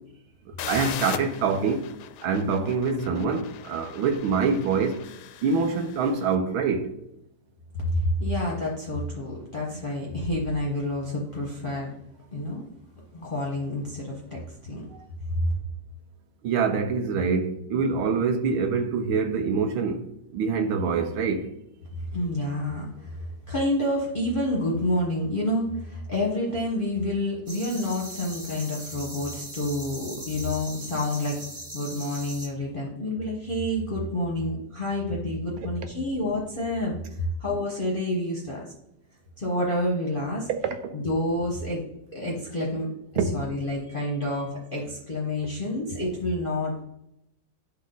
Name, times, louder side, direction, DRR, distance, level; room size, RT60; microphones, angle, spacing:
sound 1, 0.6-6.3, left 10 dB, 80° left, 1.4 m, -39 dB
voice 1, 0.7-1.9 2.2-5.0 5.4-6.9 16.4-21.5 40.5-40.9 43.2-43.4, right 5 dB, 75° right, 1.6 m, -25 dB
voice 2, 7.9-11.9 12.3-12.7 13.1-14.9 21.9-31.4 31.7-38.6 39.4-40.5 40.9-41.8 42.1-42.9 43.3-46.8, left 1 dB, 30° left, 1.2 m, -28 dB
sound 2, 27.5-32.5, right 1 dB, 25° right, 1.6 m, -40 dB
11.0 x 4.1 x 3.9 m
omnidirectional pair, 2.3 m